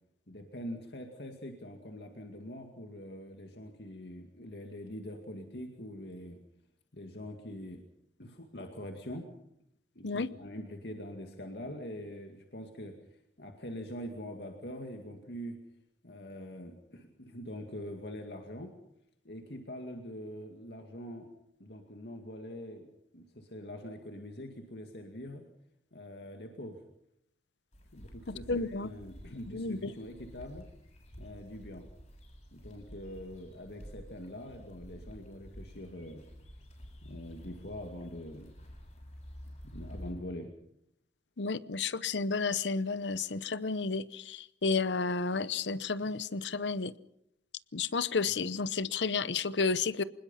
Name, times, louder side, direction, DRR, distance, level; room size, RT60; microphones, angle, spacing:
voice 1, 0.3-6.4 6.9-7.8 8.2-9.3 10.0-12.9 13.4-15.6 16.0-18.7 19.2-21.3 21.6-25.4 25.9-26.8 27.9-30.7 31.2-31.8 32.5-36.2 37.0-38.5 39.6-40.5 48.2-48.3, equal, 70° left, 2.3 m, -44 dB
sound 1, 27.7-40.1, equal, 40° left, 7.9 m, -50 dB
voice 2, 28.3-28.9 29.5-29.8 41.4-46.9 47.7-50.0, left 4 dB, 85° left, 0.9 m, -31 dB
26.0 x 20.5 x 5.7 m
head